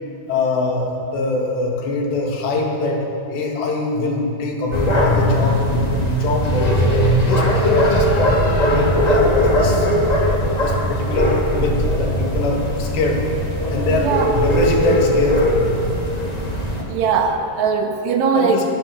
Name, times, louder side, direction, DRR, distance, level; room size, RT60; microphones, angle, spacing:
voice 1, 0.3-6.8 7.3-9.9 10.2-13.3 13.7-15.7 18.4-18.6, left 2 dB, 75° left, 0 dB, 4.7 m, -23 dB
sound 1, 4.7-16.8, equal, 15° left, 1.7 m, -19 dB
voice 2, 16.8-18.6, right 5 dB, 80° right, 3 dB, 3.8 m, -19 dB
24.0 x 16.0 x 7.1 m, 2.8 s
omnidirectional pair, 4.9 m